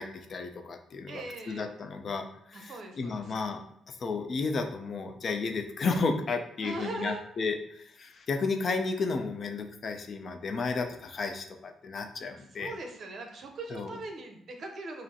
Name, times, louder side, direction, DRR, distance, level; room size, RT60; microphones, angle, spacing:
voice 1, 0.0-12.7 13.7-13.9, left 4 dB, 50° left, 5 dB, 0.5 m, -33 dB
voice 2, 1.1-1.7 2.5-3.4 6.6-7.2 12.5-15.0, right 2 dB, 55° right, 3 dB, 0.8 m, -40 dB
5.2 x 2.0 x 2.9 m, 0.68 s
cardioid pair, 90°, 0 cm